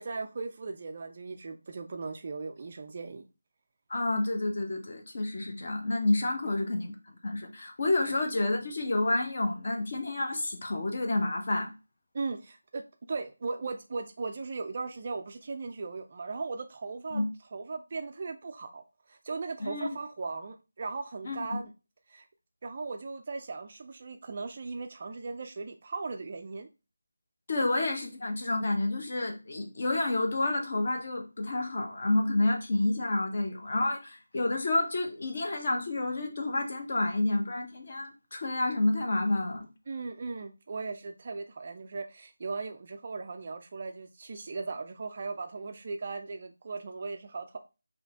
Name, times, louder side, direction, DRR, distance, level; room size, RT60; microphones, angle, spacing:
voice 1, 0.0-3.2 6.4-6.7 8.0-8.1 12.1-17.2 17.5-21.7 22.1-22.3 22.6-26.7 39.9-47.6, right 4 dB, 30° right, 0.3 m, -38 dB
voice 2, 3.9-6.9 7.2-11.7 17.1-17.2 19.6-19.9 21.2-21.4 27.5-39.7, left 2 dB, 35° left, 0.8 m, -29 dB
4.0 x 2.8 x 3.4 m
figure-of-eight pair, 175°, 0 cm